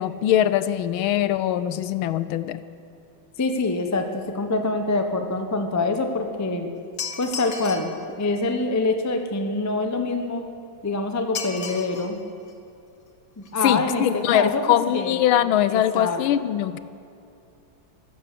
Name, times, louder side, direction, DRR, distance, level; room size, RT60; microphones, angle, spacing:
voice 1, 0.0-2.6 13.6-16.8, left 11 dB, 85° left, 14 dB, 1.5 m, -22 dB
voice 2, 3.4-6.7 7.2-10.5 10.8-12.2 13.4-15.2 15.7-16.2, left 3 dB, 25° left, 5 dB, 0.3 m, -25 dB
sound 1, 7.0-8.0 11.3-12.1 12.5-12.6 13.4-13.5 13.8-13.9 14.2-14.4 14.6-14.7, left 5 dB, 45° left, 1.5 m, -34 dB
15.5 x 12.5 x 6.8 m, 2.5 s
omnidirectional pair, 2.2 m